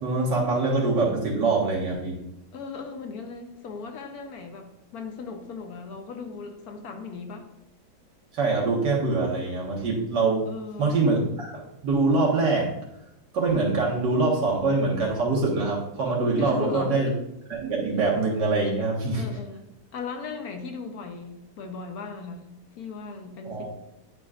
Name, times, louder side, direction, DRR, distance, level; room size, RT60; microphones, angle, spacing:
voice 1, 0.0-2.2 8.3-10.5 10.8-12.7 13.3-17.1 17.5-19.2 23.4-23.7, right 3 dB, 85° right, -3 dB, 2.1 m, -24 dB
voice 2, 2.5-7.5 10.5-10.9 16.4-16.9 19.2-23.7, left 4 dB, 70° left, 5 dB, 1.2 m, -38 dB
10.0 x 3.9 x 2.4 m, 0.85 s
omnidirectional pair, 1.8 m